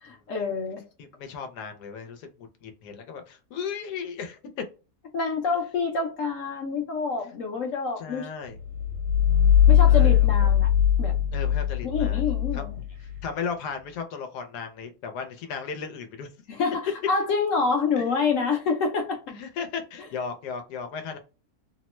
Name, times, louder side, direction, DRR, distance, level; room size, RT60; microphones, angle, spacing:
voice 1, 0.0-0.8 5.1-8.3 9.7-10.7 11.0-11.1 11.8-12.8 16.5-19.2, left 4 dB, 65° left, 0.9 m, -27 dB
voice 2, 1.0-4.4 8.0-8.6 9.8-10.5 11.3-12.2 12.5-16.3 19.3-21.2, left 6 dB, 90° left, 1.2 m, -36 dB
sound 1, 8.6-13.2, left 10 dB, 80° right, 1.1 m, -20 dB
2.9 x 2.1 x 3.0 m
omnidirectional pair, 1.7 m